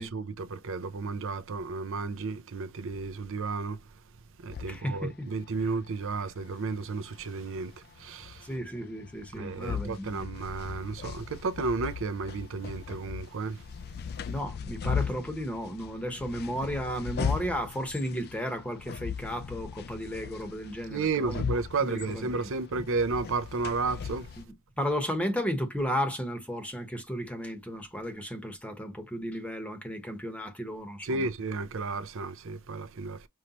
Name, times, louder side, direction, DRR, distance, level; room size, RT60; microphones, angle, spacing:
voice 1, 0.0-3.8 4.4-7.7 8.0-8.5 9.3-13.6 20.9-24.3 31.0-33.3, right 4 dB, 65° right, 0.6 m, -32 dB
sound 1, 4.5-24.4, left 6 dB, 50° left, 0.4 m, -38 dB
voice 2, 4.7-5.3 8.4-10.3 14.3-21.5 21.8-22.8 24.4-24.5 24.8-31.3, equal, 5° left, 1.0 m, -34 dB
5.5 x 3.1 x 2.9 m
head